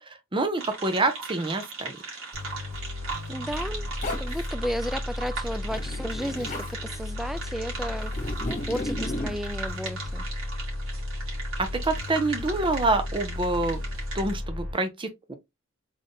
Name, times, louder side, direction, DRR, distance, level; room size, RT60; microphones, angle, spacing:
voice 1, 0.0-2.0 11.6-13.8 14.1-15.3, right 2 dB, 25° right, 0.7 m, -27 dB
sound 1, 0.6-14.3, right 4 dB, 70° right, 2.3 m, -39 dB
sound 2, 2.3-14.7, left 1 dB, 85° right, 2.4 m, -34 dB
voice 2, 3.3-3.9 4.2-10.3, equal, ahead, 0.3 m, -33 dB
Zipper (clothing), 4.0-4.5 5.6-6.7 8.1-9.4, left 1 dB, 35° left, 1.4 m, -34 dB
3.9 x 3.6 x 3.6 m
head